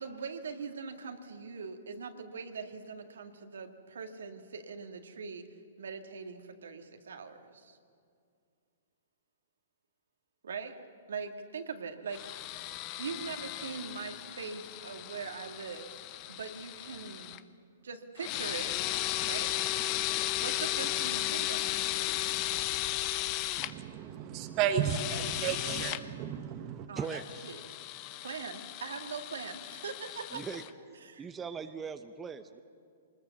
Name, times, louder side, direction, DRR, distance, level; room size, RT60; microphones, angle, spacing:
voice 1, 0.0-5.5 5.8-7.8 10.4-10.8 11.1-12.5 13.0-15.9 16.3-17.4 17.8-18.8 19.2-19.5 20.4-21.7 26.9-27.6 28.2-30.4 31.0-31.3, right 5 dB, 70° right, 6 dB, 2.0 m, -41 dB
sound 1, 12.1-17.4 18.2-23.7 24.8-26.0 27.0-30.7, left 15 dB, 40° left, 0.9 m, -35 dB
voice 2, 23.6-26.9, right 9 dB, 35° right, 8 dB, 1.2 m, -33 dB
voice 3, 26.5-27.5 30.3-30.6 31.2-32.6, right 6 dB, 15° right, 8 dB, 0.9 m, -40 dB
24.5 x 20.5 x 7.2 m, 2.3 s
hypercardioid pair, 115°, 0 cm